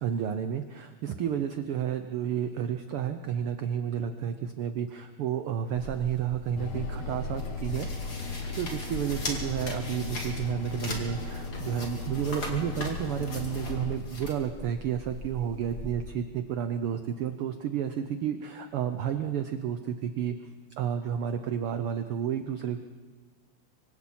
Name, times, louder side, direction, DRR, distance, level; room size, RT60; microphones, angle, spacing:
voice 1, 0.0-7.9 8.6-20.3 20.8-22.8, right 9 dB, 70° right, 8 dB, 1.3 m, -31 dB
sound 1, 5.8-15.9, left 1 dB, 35° left, 2.9 m, -39 dB
sound 2, 6.6-14.0, left 4 dB, 60° left, 2.7 m, -37 dB
25.0 x 25.0 x 4.4 m, 1.4 s
omnidirectional pair, 3.4 m